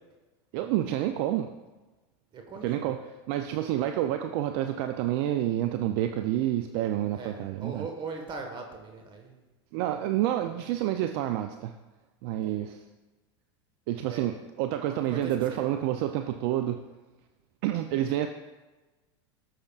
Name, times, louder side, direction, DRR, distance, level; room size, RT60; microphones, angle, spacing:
voice 1, 0.5-1.5 2.6-3.0 3.3-7.9 9.7-11.7 12.2-12.8 13.9-16.8 17.6-18.3, right 12 dB, 60° right, 7 dB, 0.5 m, -28 dB
voice 2, 2.3-2.9 7.1-9.4 12.5-12.7 14.0-14.3 14.9-15.7, right 4 dB, 35° right, 3 dB, 1.4 m, -40 dB
13.5 x 6.6 x 2.4 m, 1.2 s
hypercardioid pair, 110°, 14 cm